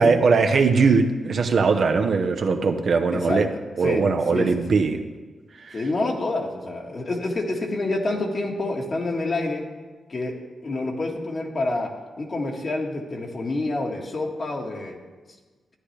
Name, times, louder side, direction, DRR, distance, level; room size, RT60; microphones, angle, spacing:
voice 1, 0.0-3.5 3.8-5.0 5.6-5.8, right 4 dB, 65° right, 5 dB, 0.8 m, -20 dB
voice 2, 3.1-3.4 3.8-4.0 4.3-4.5 5.7-9.6 10.1-10.3 10.6-11.9 12.2-15.0, left 2 dB, 45° left, 1 dB, 1.7 m, -27 dB
12.5 x 10.0 x 3.3 m, 1.3 s
cardioid pair, 70°, 0 cm